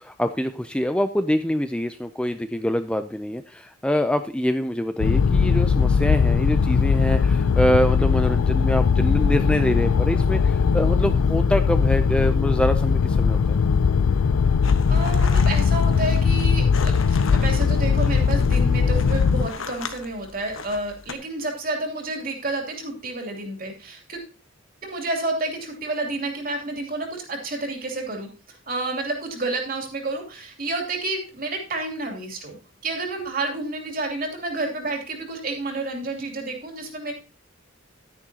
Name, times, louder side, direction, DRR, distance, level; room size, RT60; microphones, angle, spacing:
voice 1, 0.0-13.6, equal, 5° left, 8 dB, 0.4 m, -25 dB
sound 1, 5.0-19.5, left 5 dB, 90° left, 0.4 m, -19 dB
sound 2, 14.6-21.1, left 5 dB, 70° left, 1.2 m, -38 dB
voice 2, 14.9-24.2 24.8-32.5 32.8-37.1, right 2 dB, 40° right, 3 dB, 2.9 m, -30 dB
11.5 x 10.0 x 2.8 m, 0.34 s
head